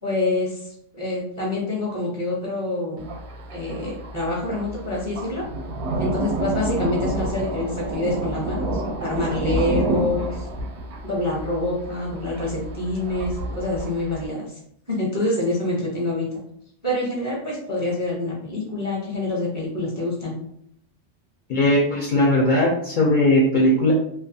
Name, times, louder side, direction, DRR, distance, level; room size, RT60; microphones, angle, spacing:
voice 1, 0.0-3.1 3.5-5.4 6.0-10.5 11.0-14.6 14.9-16.3 16.8-20.3, left 2 dB, 25° right, -4 dB, 0.4 m, -26 dB
Thunder, 3.0-14.3, right 2 dB, 70° right, 0.8 m, -29 dB
voice 2, 21.5-23.9, left 1 dB, 60° left, -3 dB, 0.5 m, -18 dB
2.4 x 2.3 x 2.6 m, 0.70 s
omnidirectional pair, 1.2 m